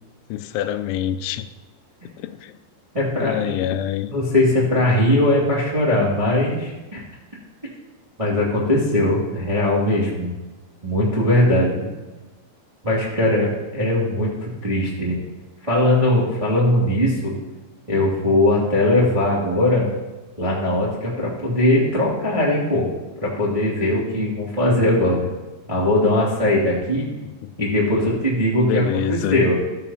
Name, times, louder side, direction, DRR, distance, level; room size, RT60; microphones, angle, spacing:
voice 1, 0.3-1.5 2.0-2.6 3.2-4.1 27.4-27.8 28.6-29.4, left 11 dB, 85° left, 10 dB, 3.0 m, -26 dB
voice 2, 2.9-3.6 4.1-7.0 8.2-10.3 10.8-11.9 12.8-15.2 15.6-17.3 17.9-19.9 20.4-22.9 23.2-25.3 25.7-27.0 27.6-29.6, left 1 dB, 15° right, -6 dB, 1.2 m, -20 dB
14.0 x 13.5 x 2.9 m, 1.2 s
omnidirectional pair, 5.4 m